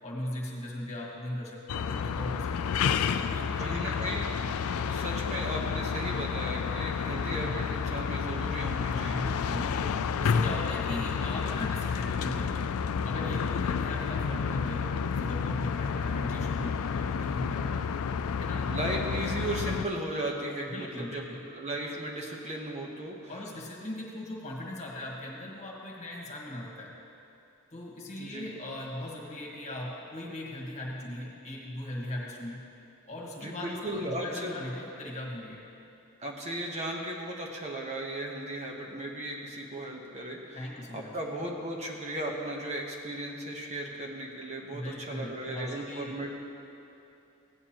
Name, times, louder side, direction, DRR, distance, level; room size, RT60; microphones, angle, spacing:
voice 1, 0.0-2.9 3.3-4.2 9.0-12.6 13.0-17.8 18.4-18.8 20.7-21.5 23.3-26.9 27.7-32.7 33.1-35.6 40.5-41.2 44.7-46.1, left 1 dB, 35° left, -2 dB, 1.6 m, -39 dB
sound 1, 1.7-19.8, left 6 dB, 75° left, 0.4 m, -30 dB
voice 2, 3.4-4.3 4.9-9.3 10.2-10.6 18.5-23.3 28.2-28.5 33.4-34.6 36.2-46.3, right 1 dB, 30° right, -1 dB, 1.0 m, -36 dB
16.0 x 9.5 x 3.0 m, 2.8 s
head